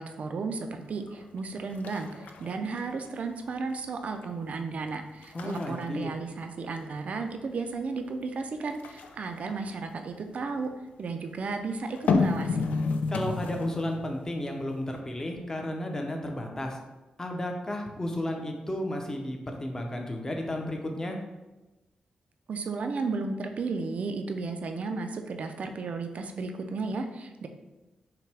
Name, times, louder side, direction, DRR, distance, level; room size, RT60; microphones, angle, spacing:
voice 1, 0.0-10.7 11.0-12.7 22.5-27.5, right 4 dB, 60° right, 6 dB, 0.4 m, -34 dB
sound 1, 1.1-1.4 1.7-3.4 3.8-4.3 4.7-4.9 5.2-7.1 8.7-10.6 11.9-14.1 14.4-14.5, left 4 dB, 85° left, 0.3 m, -31 dB
voice 2, 5.3-6.1 13.1-16.8 17.2-21.2, left 1 dB, 20° left, 2 dB, 0.6 m, -33 dB
5.7 x 2.2 x 3.3 m, 1.1 s
cardioid pair, 95°, 3 cm